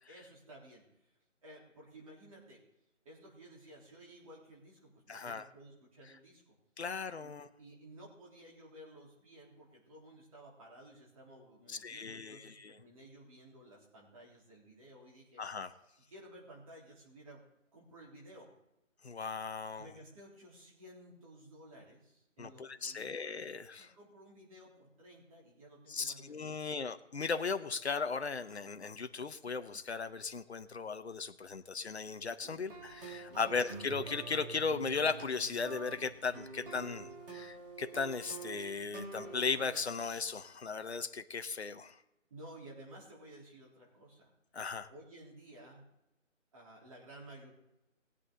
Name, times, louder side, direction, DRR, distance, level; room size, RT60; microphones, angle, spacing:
voice 1, 0.1-1.1 1.4-2.6 3.1-6.6 7.2-7.3 7.6-15.4 16.1-17.5 17.7-18.5 19.8-23.2 23.8-26.7 33.3-33.6 42.3-44.3 44.9-45.8 46.5-47.5, right 1 dB, 25° right, -4 dB, 3.5 m, -55 dB
voice 2, 5.1-5.5 6.8-7.5 11.7-12.8 15.4-15.7 19.0-19.9 22.4-23.9 25.9-42.0 44.5-44.9, left 5 dB, 55° left, 10 dB, 0.9 m, -37 dB
sound 1, 32.4-39.8, right 4 dB, 45° right, 3.3 m, -47 dB
20.0 x 8.4 x 3.8 m, 0.92 s
figure-of-eight pair, 165°, 39 cm